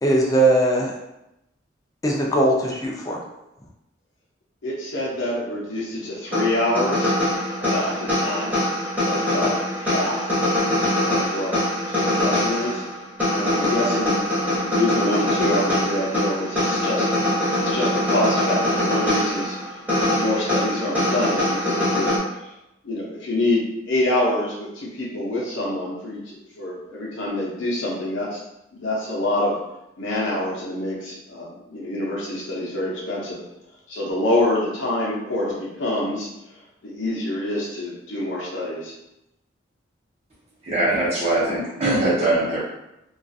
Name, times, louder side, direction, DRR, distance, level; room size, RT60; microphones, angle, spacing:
voice 1, 0.0-0.9 2.0-3.2, right 1 dB, 20° left, -2 dB, 0.4 m, -19 dB
voice 2, 4.6-7.1 7.6-8.5 9.0-10.3 11.0-11.5 11.9-12.8 13.3-17.1 17.6-19.5 20.1-22.5 22.8-28.4 28.7-29.5 30.0-33.4 33.9-36.3 36.8-38.9, left 1 dB, 90° left, -5 dB, 0.6 m, -26 dB
sound 1, 6.3-22.2, left 1 dB, 10° right, 0.8 m, -23 dB
voice 3, 40.7-42.6, right 2 dB, 35° right, -7 dB, 0.7 m, -21 dB
2.3 x 2.3 x 2.5 m, 0.88 s
head